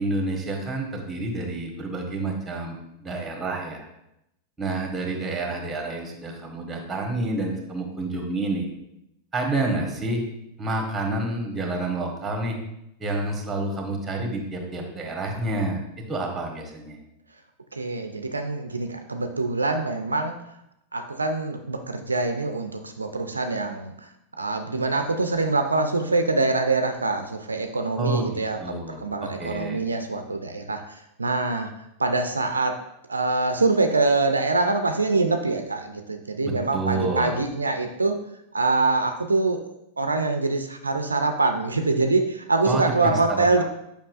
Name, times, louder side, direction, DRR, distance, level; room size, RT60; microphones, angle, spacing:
voice 1, 0.0-3.9 4.6-8.7 9.3-10.2 10.6-12.6 13.0-15.8 16.1-17.0 28.0-29.8 36.4-37.4 42.6-43.6, right 2 dB, 15° right, 2 dB, 1.4 m, -29 dB
voice 2, 17.7-20.4 20.9-23.9 24.4-31.7 32.0-32.8 33.1-38.2 38.5-43.6, right 3 dB, 80° right, 6 dB, 0.4 m, -24 dB
7.4 x 5.2 x 2.4 m, 0.83 s
figure-of-eight pair, 90°, 0 cm